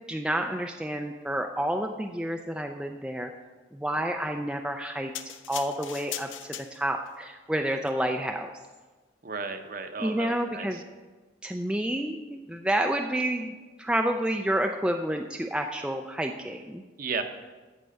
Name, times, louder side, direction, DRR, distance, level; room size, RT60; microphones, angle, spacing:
voice 1, 0.1-3.3 3.7-5.1 5.5-6.3 6.7-8.5 10.0-10.8 11.4-16.8, right 1 dB, 5° right, 3 dB, 0.3 m, -29 dB
sound 1, 5.1-7.1 7.8-7.9, left 10 dB, 75° left, 0.6 m, -39 dB
voice 2, 9.2-10.7 17.0-17.2, right 4 dB, 45° right, 7 dB, 0.8 m, -34 dB
13.0 x 4.5 x 6.3 m, 1.3 s
head